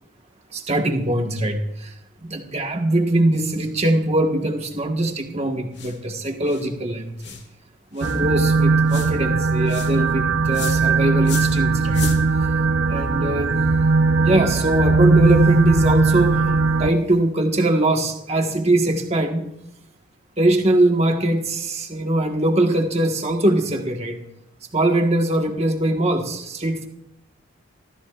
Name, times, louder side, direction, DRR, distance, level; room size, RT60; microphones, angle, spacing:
voice 1, 0.5-1.9 2.2-7.4 7.9-12.0 12.9-13.6 14.1-16.4 16.8-19.5 20.4-24.2 24.7-26.9, right 1 dB, 30° right, 3 dB, 1.5 m, -21 dB
sound 1, 5.7-6.0 6.5-6.7 7.2-7.5 8.0-8.2 8.9-9.1 9.7-9.9 10.5-10.8 11.2-11.6 11.9-12.2, left 6 dB, 55° left, 1.9 m, -34 dB
sound 2, 8.0-16.9, right 4 dB, 75° right, 0.7 m, -19 dB
28.0 x 14.5 x 2.5 m, 0.83 s
head